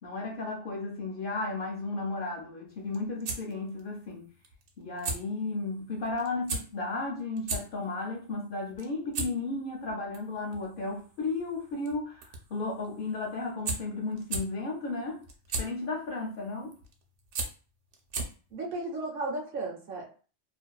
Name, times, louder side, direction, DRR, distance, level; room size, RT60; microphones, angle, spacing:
voice 1, 0.0-4.3 4.8-15.2 15.6-16.7, left 3 dB, 60° left, 0 dB, 0.7 m, -34 dB
sound 1, 2.7-18.6, right 3 dB, 90° right, 0.9 m, -39 dB
voice 2, 18.5-20.1, right 2 dB, 60° right, -1 dB, 0.8 m, -34 dB
2.5 x 2.1 x 2.3 m, 0.38 s
omnidirectional pair, 1.2 m